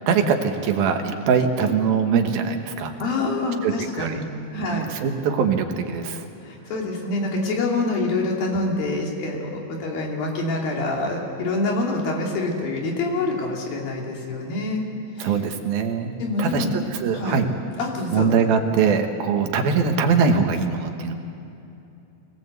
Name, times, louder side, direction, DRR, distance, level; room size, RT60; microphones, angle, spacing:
voice 1, 0.1-2.9 3.6-4.1 4.5-6.3 15.2-16.1 16.4-16.6 16.9-17.5 18.1-21.1, right 6 dB, 85° right, 4 dB, 3.1 m, -22 dB
voice 2, 3.0-4.2 4.5-4.9 6.4-14.8 15.2-15.4 16.2-16.8 17.1-17.4 17.8-18.3, left 2 dB, 80° left, -1 dB, 4.6 m, -26 dB
23.5 x 18.0 x 8.1 m, 2.8 s
omnidirectional pair, 4.1 m